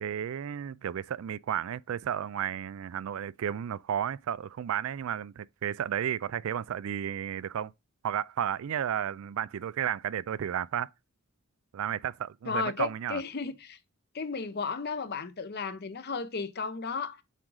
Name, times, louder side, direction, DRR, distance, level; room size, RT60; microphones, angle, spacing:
voice 1, 0.0-7.7 8.0-10.9 11.7-13.2, right 9 dB, 70° right, 0.3 m, -33 dB
voice 2, 12.5-13.8 14.1-17.2, left 5 dB, 50° left, 0.7 m, -34 dB
7.4 x 3.7 x 4.7 m
head